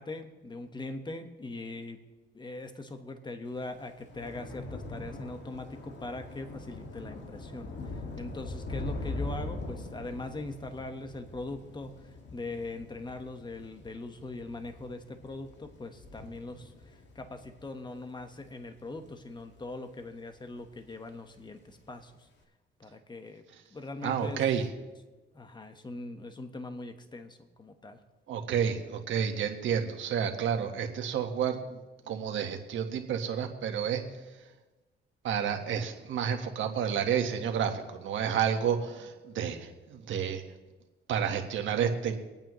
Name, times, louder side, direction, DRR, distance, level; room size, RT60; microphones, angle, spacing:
voice 1, 0.0-2.0 2.3-22.3 22.8-23.4 23.7-24.4 25.3-28.0, left 2 dB, 20° left, 7 dB, 1.3 m, -41 dB
Thunder / Rain, 3.6-20.1 20.5-20.9 21.2-21.4, left 2 dB, 65° left, 2.0 m, -42 dB
voice 2, 24.0-24.6 28.3-31.8 32.1-34.0 35.2-40.4 41.1-42.2, right 8 dB, 75° right, 4 dB, 1.6 m, -30 dB
25.5 x 8.9 x 3.1 m, 1.2 s
cardioid pair, 90°, 20 cm